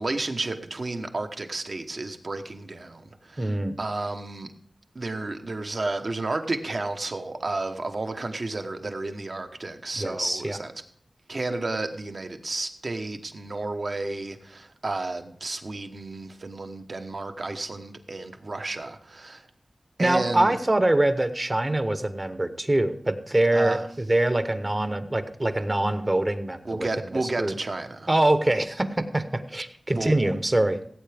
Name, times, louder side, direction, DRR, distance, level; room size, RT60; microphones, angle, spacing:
voice 1, 0.0-3.5 3.8-4.5 4.9-10.7 11.3-19.5 20.0-20.6 23.5-23.8 26.6-28.1 29.9-30.3, right 2 dB, 55° right, 1.1 m, -32 dB
voice 2, 3.4-3.8 10.0-10.6 20.0-27.5 28.1-30.9, right 1 dB, 30° right, 0.9 m, -24 dB
17.0 x 8.5 x 3.5 m
wide cardioid pair, 75°, 0 cm